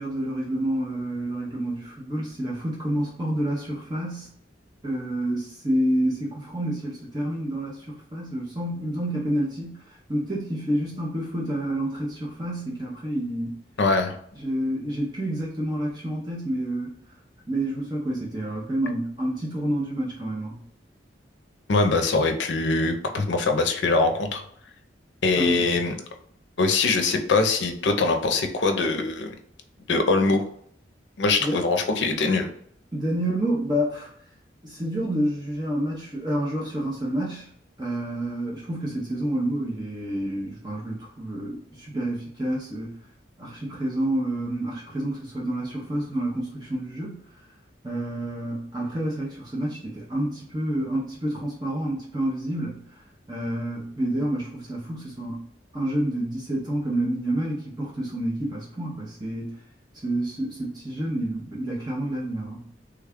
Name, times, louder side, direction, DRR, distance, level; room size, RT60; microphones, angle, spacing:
voice 1, 0.0-4.3 4.8-13.6 14.4-17.0 17.5-20.6 25.4-25.6 31.4-31.6 32.9-34.1 34.6-37.5 37.8-43.0 43.4-47.2 47.8-53.0 53.3-55.4 55.7-59.5 60.0-62.7, right 1 dB, 25° right, -5 dB, 0.7 m, -28 dB
voice 2, 13.8-14.2 21.7-24.4 25.2-25.9 26.6-29.4 29.9-30.4 31.2-32.5, left 3 dB, 75° left, 5 dB, 0.5 m, -22 dB
3.3 x 2.3 x 3.5 m, 0.67 s
head